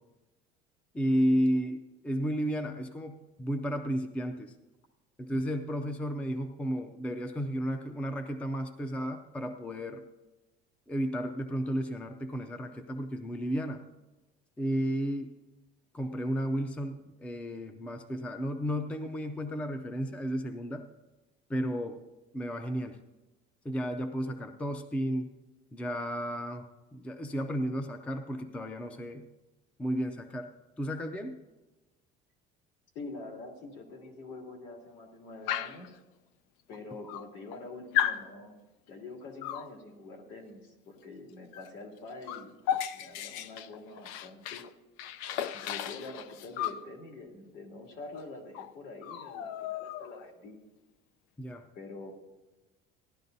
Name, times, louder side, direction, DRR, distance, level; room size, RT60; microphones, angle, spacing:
voice 1, 0.9-4.5 5.2-10.0 10.9-13.9 14.6-15.3 15.9-20.9 21.5-22.0 22.3-23.0 23.6-25.3 25.7-29.3 29.8-30.5 30.8-31.4 51.4-51.7, equal, 5° left, 7 dB, 0.4 m, -33 dB
voice 2, 32.9-35.9 36.7-38.5 38.9-42.5 42.9-44.6 45.5-50.6 51.7-52.1, left 3 dB, 65° left, 1 dB, 2.6 m, -45 dB
Dog, 35.5-35.9 36.7-36.8 37.1-37.6 37.9-38.3 39.4-39.7 41.5-41.7 42.0-44.7 45.0-46.8 48.1-48.2 48.5-48.7 49.0-50.3, left 10 dB, 85° left, 0.6 m, -34 dB
17.0 x 11.5 x 2.7 m, 1.1 s
cardioid pair, 170°, 21 cm